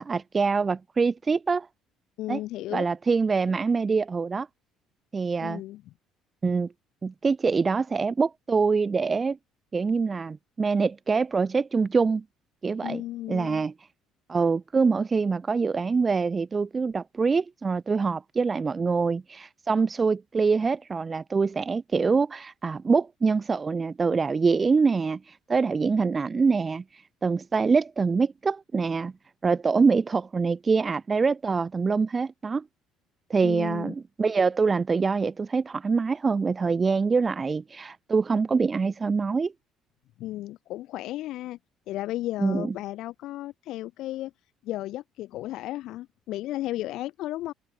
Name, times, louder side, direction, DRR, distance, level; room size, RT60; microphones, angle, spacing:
voice 1, 0.0-1.7 2.3-2.4 2.7-4.5 5.1-5.6 6.4-6.7 7.0-9.4 9.7-12.2 12.6-13.0 13.3-13.7 14.3-29.1 29.4-32.6 33.3-39.5 42.4-42.7, right 4 dB, 25° right, 0.3 m, -25 dB
voice 2, 2.2-2.9 5.4-5.8 12.8-13.6 33.4-33.9 40.2-41.6 41.9-44.3 44.6-47.5, left 15 dB, 70° left, 1.8 m, -34 dB
open air
cardioid pair, 120°, 0 cm